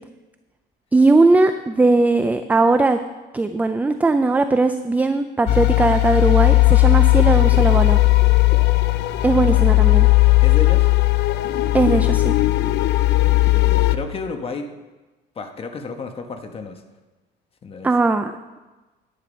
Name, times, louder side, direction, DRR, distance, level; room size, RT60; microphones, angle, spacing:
voice 1, 0.9-3.0 3.3-8.0 9.2-10.1 11.7-12.4 17.8-18.6, right 3 dB, 10° right, 9 dB, 0.4 m, -18 dB
sound 1, 5.5-14.0, left 19 dB, 70° left, 0.6 m, -16 dB
voice 2, 9.3-10.1 10.4-10.9 13.3-14.7 15.3-16.8 17.6-17.9, left 4 dB, 30° left, 5 dB, 1.3 m, -32 dB
10.5 x 9.7 x 5.4 m, 1.2 s
cardioid pair, 135°, 19 cm